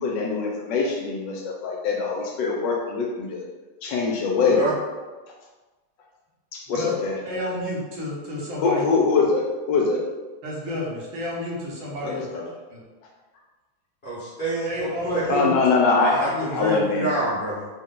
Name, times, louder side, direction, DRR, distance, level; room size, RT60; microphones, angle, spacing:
voice 1, 0.0-3.4 3.8-4.6 6.5-7.2 8.6-10.1 12.0-12.5 15.3-16.2 16.5-17.1, left 4 dB, 75° left, 0 dB, 1.1 m, -23 dB
voice 2, 7.3-8.9 10.4-12.3 12.7-12.8 14.6-15.5 16.2-16.8, left 1 dB, 75° right, -4 dB, 1.6 m, -30 dB
voice 3, 14.0-15.2 16.0-17.7, right 2 dB, 55° left, -9 dB, 0.5 m, -27 dB
3.8 x 2.2 x 3.7 m, 1.3 s
omnidirectional pair, 2.2 m